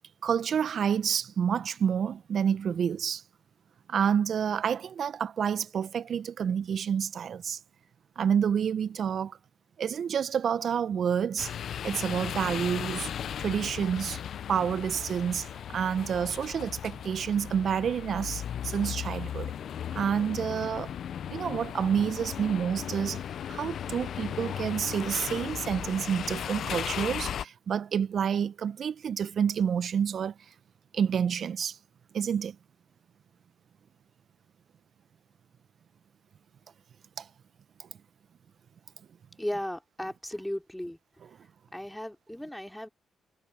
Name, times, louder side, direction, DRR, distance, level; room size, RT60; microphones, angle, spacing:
voice 1, 0.2-3.2 3.9-7.6 8.2-9.4 9.8-11.5 11.8-13.1 13.4-14.2 14.5-19.5 19.9-20.9 21.3-23.2 23.5-30.5 30.9-31.8 32.1-32.5 37.2-37.3 37.8-37.9, right 7 dB, 60° right, 1.1 m, -29 dB
sound 1, 11.4-27.5, left 9 dB, 65° left, 0.9 m, -36 dB
voice 2, 39.4-41.0 41.7-42.9, left 1 dB, 5° left, 5.4 m, -36 dB
hypercardioid pair, 45°, 0 cm